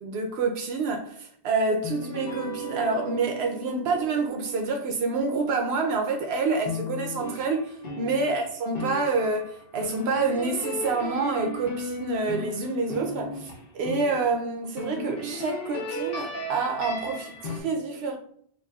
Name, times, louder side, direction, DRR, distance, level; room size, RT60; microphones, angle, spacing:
voice 1, 0.0-18.2, right 3 dB, 80° right, 0.8 m, -28 dB
sound 1, 1.8-6.2 6.6-14.4 14.8-17.6, left 1 dB, 65° left, 1.0 m, -36 dB
6.4 x 2.5 x 2.3 m
omnidirectional pair, 1.1 m